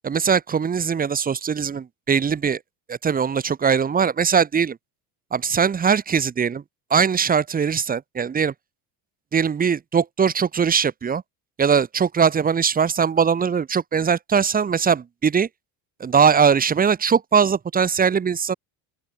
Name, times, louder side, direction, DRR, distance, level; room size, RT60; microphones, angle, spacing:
voice 1, 0.0-2.6 2.9-4.8 5.3-6.6 6.9-8.5 9.3-11.2 11.6-15.5 16.0-18.5, right 6 dB, 20° right, 2.3 m, -20 dB
open air
cardioid pair, 160°, 41 cm